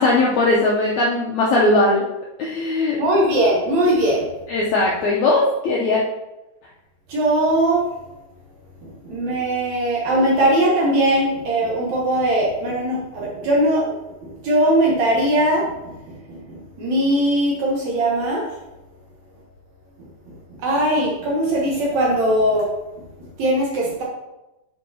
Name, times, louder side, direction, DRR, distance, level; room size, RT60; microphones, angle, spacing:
voice 1, 0.0-2.0 2.4-3.0 4.5-6.0, left 2 dB, 80° left, -4 dB, 1.6 m, -19 dB
voice 2, 3.0-4.3 7.1-7.9 8.8-13.8 14.2-18.4 20.3-20.4 20.6-22.7 23.4-24.0, right 1 dB, 65° right, -3 dB, 1.9 m, -20 dB
9.2 x 4.5 x 2.8 m, 0.97 s
omnidirectional pair, 4.2 m